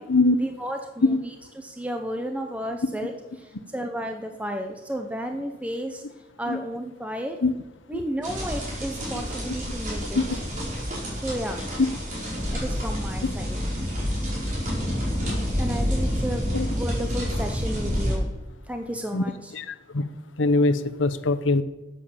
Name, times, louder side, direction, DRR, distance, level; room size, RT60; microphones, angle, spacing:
voice 1, 0.4-6.0 6.4-7.4 7.9-10.2 11.2-11.6 12.5-13.6 15.6-16.5 16.7-18.3 18.7-19.5, equal, 5° right, 4 dB, 0.8 m, -32 dB
sound 1, 8.2-18.1, equal, 40° right, 5.0 m, -28 dB
voice 2, 19.5-20.1 20.4-21.6, left 2 dB, 90° left, 12 dB, 0.9 m, -22 dB
12.5 x 8.4 x 7.1 m, 1.1 s
head